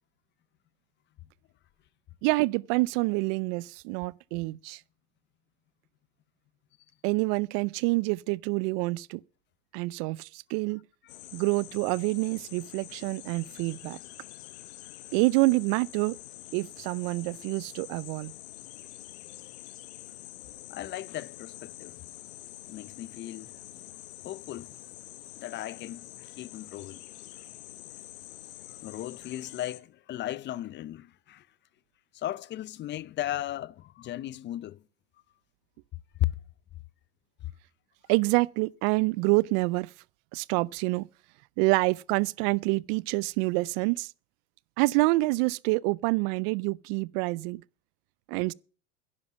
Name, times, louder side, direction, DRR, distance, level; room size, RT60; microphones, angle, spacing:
voice 1, 2.2-4.8 7.0-9.2 9.7-10.8 11.3-14.0 15.1-16.2 16.5-18.3 38.1-39.9 40.3-41.1 41.6-44.1 44.8-47.6 48.3-48.5, right 24 dB, 60° right, 0.5 m, -27 dB
sound 1, 11.1-29.8, left 16 dB, 75° left, 1.2 m, -46 dB
voice 2, 20.7-22.0 22.7-23.6 24.2-24.7 25.4-27.0 28.7-31.5 32.1-34.8 36.2-36.3, left 14 dB, 35° left, 0.5 m, -36 dB
11.0 x 10.5 x 7.0 m
hypercardioid pair, 95°, 33 cm